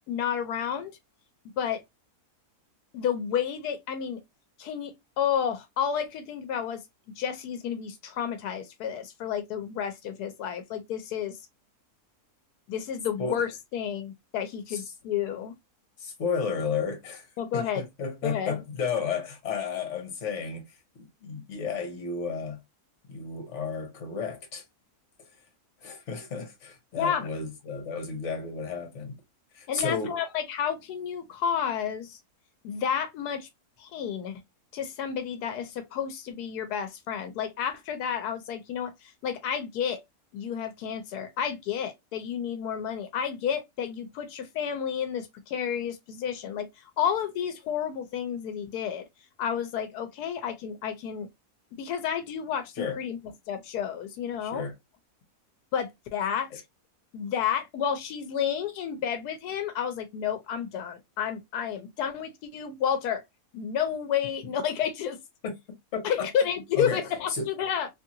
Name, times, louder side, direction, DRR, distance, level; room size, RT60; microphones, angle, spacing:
voice 1, 0.1-0.9 1.6-1.8 2.9-4.2 4.6-6.8 7.2-11.4 12.7-15.5 17.4-17.8 18.2-18.6 27.0-27.3 29.7-32.2 32.6-33.5 33.8-34.4 34.7-40.0 40.3-49.1 49.4-51.3 51.8-53.2 53.5-54.6 55.7-56.5 57.1-63.2 63.5-65.2 66.0-67.9, left 8 dB, 85° left, 1.1 m, -31 dB
voice 2, 16.0-22.6 23.1-24.6 25.8-29.2 29.5-30.2 52.8-53.0 54.4-54.7 65.4-65.5 65.9-66.3 66.7-67.0 67.3-67.5, left 5 dB, 55° left, 1.2 m, -32 dB
2.9 x 2.7 x 2.5 m
omnidirectional pair, 1.6 m